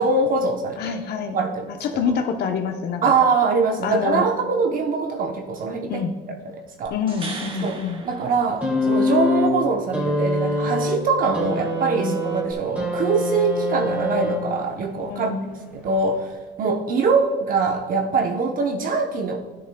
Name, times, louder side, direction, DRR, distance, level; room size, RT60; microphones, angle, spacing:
voice 1, 0.0-1.0 1.3-2.1 3.0-6.1 6.5-7.0 7.6-15.3 15.7-19.4, right 4 dB, 50° right, 4 dB, 0.8 m, -23 dB
voice 2, 0.8-1.4 1.8-3.1 3.8-4.3 5.9-6.1 6.9-8.0 12.0-12.2 15.1-15.5, left 6 dB, 65° left, 5 dB, 0.8 m, -26 dB
sound 1, 6.9-9.1 12.5-12.6, right 3 dB, 30° right, 1.2 m, -38 dB
sound 2, 8.6-14.8 15.8-15.9, left 1 dB, 10° right, 2.5 m, -24 dB
12.5 x 10.0 x 2.2 m, 1.3 s
cardioid pair, 110°, 18 cm